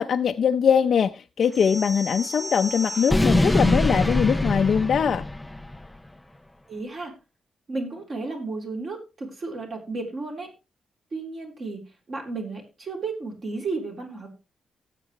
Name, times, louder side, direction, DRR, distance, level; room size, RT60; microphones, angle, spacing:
voice 1, 0.0-5.2, left 7 dB, 55° left, 5 dB, 0.6 m, -22 dB
sound 1, 1.5-5.9, left 1 dB, 5° left, 0.5 m, -25 dB
voice 2, 6.7-7.1 7.7-10.5 11.1-11.8 12.1-14.3, right 3 dB, 40° right, 1 dB, 3.5 m, -33 dB
17.5 x 7.6 x 3.2 m, 0.28 s
cardioid pair, 135°, 0 cm